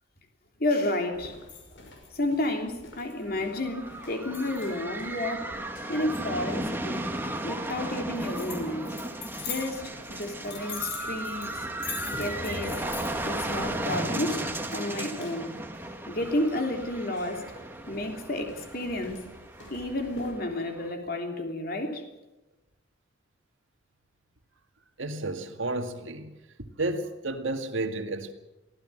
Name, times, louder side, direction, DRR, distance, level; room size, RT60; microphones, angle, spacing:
voice 1, 0.6-1.4 2.1-5.5 5.9-7.1 7.4-8.9 9.4-11.7 12.1-12.8 13.2-14.5 14.7-15.5 16.1-17.5 17.9-19.2 19.7-22.1, left 1 dB, 50° left, 3.1 m, -31 dB
sound 1, 1.1-20.3, left 4 dB, 70° left, 5.6 m, -44 dB
sound 2, 3.3-20.9, right 1 dB, 10° right, 1.6 m, -35 dB
voice 2, 25.0-26.3 26.8-28.3, right 2 dB, 80° right, 2.1 m, -31 dB
24.0 x 16.0 x 7.8 m
head